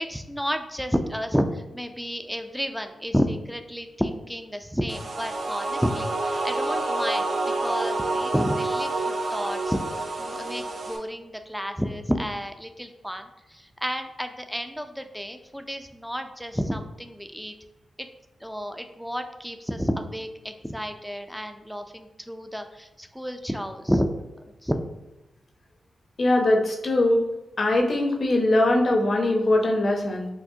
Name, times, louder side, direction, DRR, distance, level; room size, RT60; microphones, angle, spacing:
voice 1, 0.0-7.3 7.6-17.5 18.0-18.1 18.4-24.1 24.6-24.8, equal, ahead, 6 dB, 0.4 m, -30 dB
sound 1, 4.9-11.0, right 2 dB, 70° right, 0.6 m, -28 dB
voice 2, 26.2-27.2 27.6-30.3, left 1 dB, 60° left, 2 dB, 0.7 m, -21 dB
5.8 x 2.1 x 2.7 m, 0.99 s
cardioid pair, 55°, 0 cm